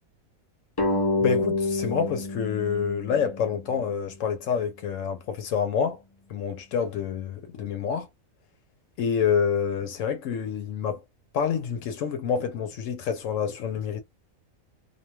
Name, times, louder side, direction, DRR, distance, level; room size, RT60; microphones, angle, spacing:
sound 1, 0.8-4.0, left 2 dB, 35° left, 0.3 m, -28 dB
voice 1, 1.2-6.0 6.3-8.1 9.0-11.0 11.3-14.0, left 7 dB, 75° left, 0.9 m, -27 dB
2.5 x 2.2 x 2.8 m
omnidirectional pair, 1.4 m